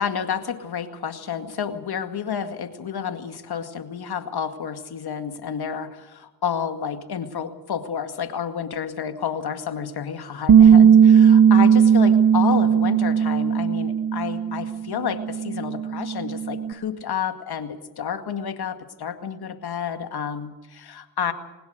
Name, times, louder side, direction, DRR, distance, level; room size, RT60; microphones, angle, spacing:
voice 1, 0.0-21.3, left 7 dB, 65° left, 8 dB, 2.1 m, -30 dB
Bass guitar, 10.5-14.8 15.1-16.7, right 7 dB, 55° right, 1.3 m, -16 dB
21.5 x 19.5 x 6.6 m, 1.1 s
supercardioid pair, 40°, 42 cm